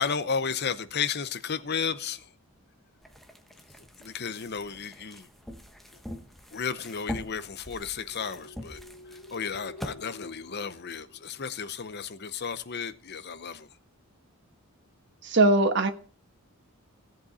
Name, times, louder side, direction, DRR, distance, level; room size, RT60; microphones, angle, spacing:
voice 1, 0.0-2.3 4.0-5.3 6.5-8.8 9.1-13.7, left 6 dB, 50° left, 0.7 m, -33 dB
sound 1, 3.0-9.9, left 1 dB, ahead, 1.0 m, -43 dB
sound 2, 8.0-11.8, left 2 dB, 85° left, 4.2 m, -49 dB
voice 2, 15.2-15.9, right 2 dB, 55° right, 1.3 m, -20 dB
16.5 x 7.8 x 4.2 m
head